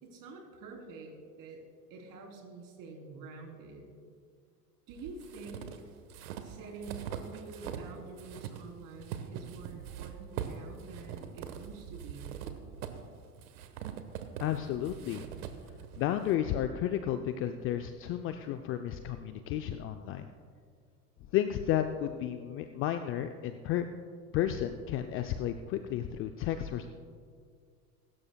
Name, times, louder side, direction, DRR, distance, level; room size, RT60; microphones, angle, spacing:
voice 1, 0.0-1.1 1.4-1.6 1.9-3.9 4.9-5.6 6.4-12.3, right 4 dB, 45° right, 1 dB, 3.5 m, -47 dB
sound 1, 4.9-7.9 8.2-16.3, right 9 dB, 65° right, 1.3 m, -42 dB
voice 2, 14.4-15.3 16.0-20.3 21.3-23.9 24.3-26.9, left 11 dB, 30° left, 8 dB, 0.4 m, -32 dB
22.0 x 12.5 x 2.3 m, 2.1 s
hypercardioid pair, 95°, 48 cm